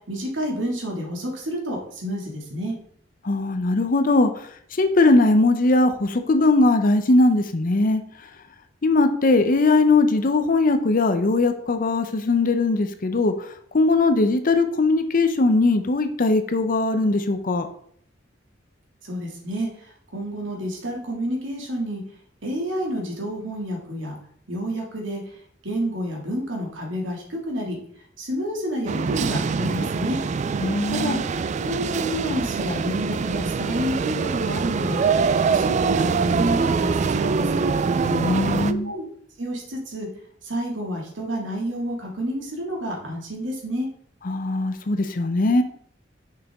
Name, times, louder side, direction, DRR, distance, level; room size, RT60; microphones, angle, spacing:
voice 1, 0.1-2.7 19.0-22.0 22.4-24.2 24.5-25.3 25.6-27.8 28.2-30.2 30.9-31.2 31.6-35.0 35.5-37.6 38.6-39.0 39.4-40.1 40.4-43.9, equal, 85° right, 0 dB, 2.2 m, -29 dB
voice 2, 3.2-4.3 4.7-8.0 8.8-13.5 13.7-17.7 30.6-31.2 38.0-38.9 44.2-45.6, left 2 dB, 45° left, 8 dB, 0.6 m, -20 dB
sound 1, 28.9-38.7, right 5 dB, 40° right, 0.3 m, -24 dB
6.6 x 5.9 x 3.5 m, 0.62 s
head